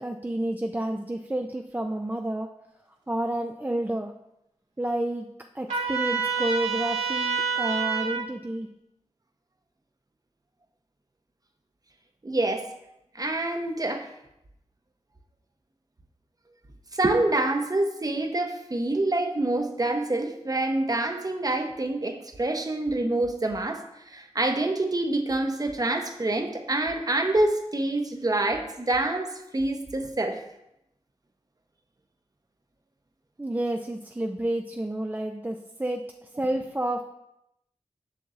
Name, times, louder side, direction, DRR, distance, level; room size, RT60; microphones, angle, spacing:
voice 1, 0.0-2.5 3.1-4.1 4.8-5.3 5.5-8.7 33.4-37.0, right 1 dB, 15° right, 3 dB, 0.4 m, -30 dB
Trumpet, 5.7-8.2, right 5 dB, 85° right, 2.0 m, -27 dB
voice 2, 12.2-12.7 13.1-14.1 16.9-30.4, right 2 dB, 30° right, 5 dB, 0.8 m, -26 dB
6.9 x 5.9 x 2.5 m, 0.83 s
cardioid pair, 50°, 12 cm